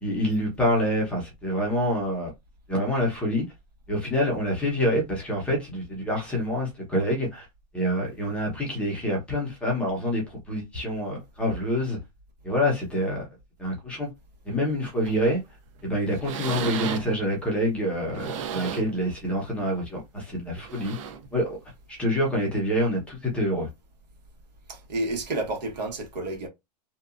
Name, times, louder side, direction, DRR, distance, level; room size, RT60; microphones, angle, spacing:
voice 1, 0.0-2.3 2.7-3.4 3.9-7.4 7.7-12.0 12.4-13.3 13.6-14.1 14.5-15.4 15.8-21.0 21.3-21.6 21.9-23.7, equal, 5° left, 0.7 m, -26 dB
sound 1, 15.1-15.3 15.8-15.9 16.2-17.3 17.9-19.0 19.5-19.7 20.6-21.3 22.4-22.5, right 7 dB, 50° right, 0.5 m, -34 dB
voice 2, 24.7-26.5, right 2 dB, 85° right, 1.4 m, -30 dB
2.8 x 2.2 x 2.4 m
supercardioid pair, 170°, 21 cm